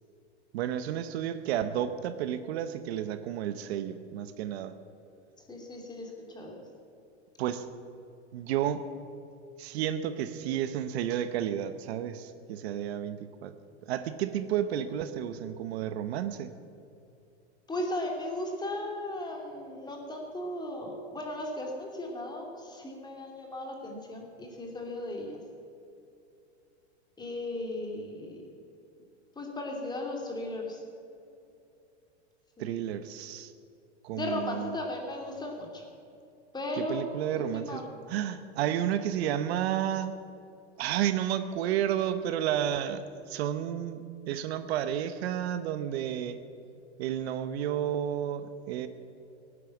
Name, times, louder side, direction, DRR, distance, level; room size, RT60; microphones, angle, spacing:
voice 1, 0.5-4.8 7.4-7.7 8.3-8.8 9.6-13.5 13.9-16.5 32.6-33.5 34.0-34.7 36.7-40.1 40.8-46.4 47.0-48.9, right 10 dB, 65° right, 11 dB, 1.0 m, -31 dB
voice 2, 5.5-6.6 17.7-25.4 27.2-28.4 29.4-30.8 32.6-32.7 34.1-35.8 36.5-37.0 37.4-38.0, left 1 dB, 10° left, 1 dB, 2.8 m, -36 dB
17.0 x 9.9 x 7.2 m, 2.6 s
hypercardioid pair, 130°, 34 cm